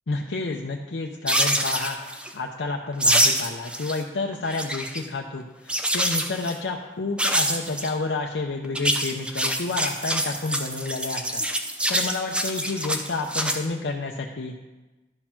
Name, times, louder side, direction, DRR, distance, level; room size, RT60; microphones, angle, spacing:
voice 1, 0.1-2.0 2.3-11.4 11.9-14.6, left 3 dB, 85° left, 1 dB, 0.6 m, -30 dB
sound 1, 1.3-2.3 3.0-4.0 4.3-5.0 5.7-6.5 7.2-7.9 8.6-13.6, right 1 dB, 5° right, 0.6 m, -25 dB
11.5 x 4.4 x 5.7 m, 1.2 s
head